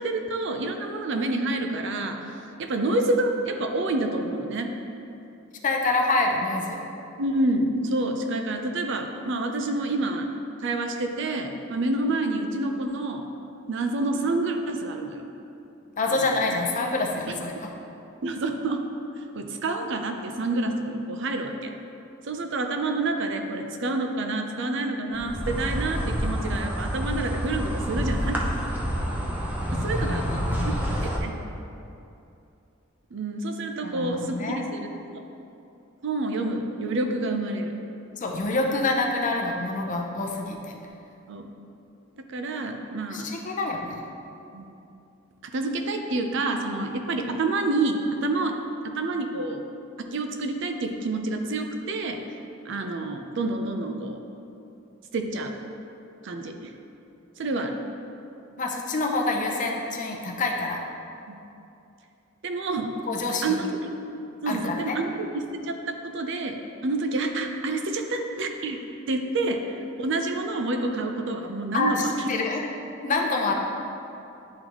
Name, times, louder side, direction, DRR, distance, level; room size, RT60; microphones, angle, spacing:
voice 1, 0.0-2.2 2.6-4.7 7.2-10.3 10.6-13.2 13.7-15.3 16.1-16.6 17.3-17.4 18.2-18.8 19.3-21.7 22.2-28.4 29.7-30.2 30.6-30.7 31.0-31.3 33.1-35.2 36.0-37.7 41.3-41.5 42.3-43.3 44.5-44.7 45.5-48.6 48.8-49.6 50.1-52.2 52.7-54.2 55.1-55.5 56.2-56.7 57.4-57.8 61.3-61.4 62.4-62.9 63.4-63.9 64.4-66.6 66.8-68.8 69.1-72.1, right 2 dB, 65° right, 4 dB, 0.5 m, -28 dB
voice 2, 5.6-6.8 16.0-17.7 30.0-31.0 33.8-34.6 38.2-40.7 43.1-44.0 58.6-60.8 63.0-63.6 64.5-65.0 71.7-72.0 72.3-72.6 73.0-73.5, left 3 dB, 40° left, 1 dB, 0.7 m, -27 dB
Insect, 25.1-31.2, equal, 10° right, 0.7 m, -28 dB
10.5 x 3.9 x 3.0 m, 2.7 s
head